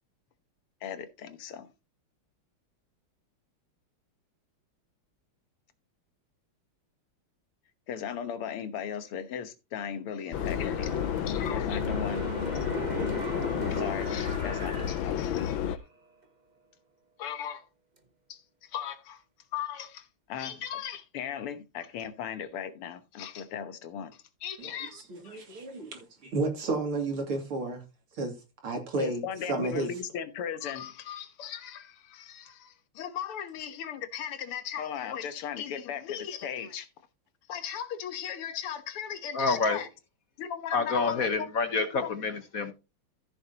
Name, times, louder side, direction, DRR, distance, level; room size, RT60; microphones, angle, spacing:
voice 1, 0.8-1.7 7.9-12.7 13.7-15.8 17.2-17.7 18.3-19.2 19.5-25.4 29.0-36.9 37.5-39.9 40.4-41.5 41.9-42.2, left 8 dB, 90° left, 2.1 m, -37 dB
Subway metro underground, 10.3-15.8, left 9 dB, 70° left, 1.4 m, -31 dB
sound 1, 10.3-15.9 16.2-16.3, right 4 dB, 30° right, 0.8 m, -39 dB
voice 2, 25.1-27.8 28.2-28.3 28.6-29.2 29.5-29.9, right 2 dB, 75° right, 3.5 m, -31 dB
voice 3, 39.3-39.8 40.7-42.7, left 4 dB, 50° left, 1.4 m, -28 dB
14.0 x 6.7 x 2.9 m
omnidirectional pair, 2.4 m